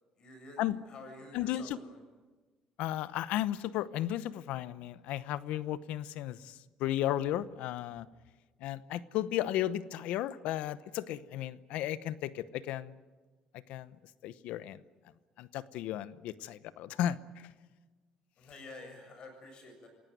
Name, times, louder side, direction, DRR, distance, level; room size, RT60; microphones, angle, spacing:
voice 1, 0.2-2.0 18.4-19.9, left 2 dB, 45° left, 5 dB, 7.5 m, -49 dB
voice 2, 1.3-1.8 2.8-8.1 8.6-12.9 13.7-13.9 14.2-14.8 15.4-17.5, left 12 dB, 80° left, 16 dB, 0.8 m, -34 dB
27.5 x 17.0 x 9.3 m, 1.3 s
cardioid pair, 130°, 2 cm